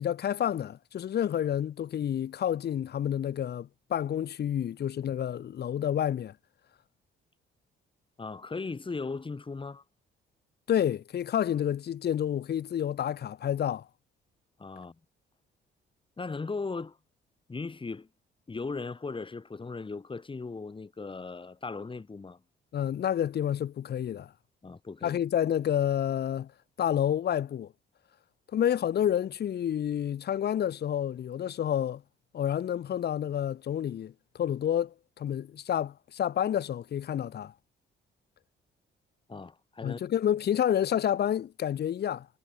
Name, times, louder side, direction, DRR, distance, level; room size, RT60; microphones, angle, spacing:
voice 1, 0.0-6.3 10.7-13.9 22.7-24.3 25.0-26.5 26.8-27.7 28.5-32.0 32.3-37.5 39.8-42.3, left 10 dB, 55° left, 1.1 m, -29 dB
voice 2, 8.2-9.8 14.6-14.9 16.2-17.0 17.5-18.1 18.5-22.4 24.6-25.2 39.3-40.0, left 4 dB, 25° left, 3.0 m, -37 dB
cardioid pair, 90°, 20 cm